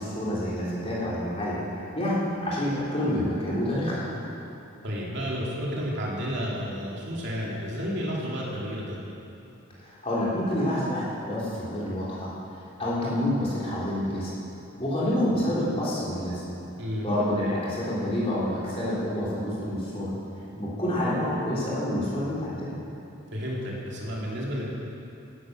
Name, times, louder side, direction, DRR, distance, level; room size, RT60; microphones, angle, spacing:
voice 1, 0.0-1.6 1.9-4.1 9.8-12.3 12.8-14.3 14.8-16.4 17.0-20.1 20.6-22.7, left 1 dB, 25° left, -7 dB, 3.7 m, -28 dB
voice 2, 4.8-9.0 16.8-17.1 23.3-24.7, equal, 50° right, -4 dB, 2.9 m, -31 dB
16.5 x 11.5 x 6.2 m, 2.8 s
head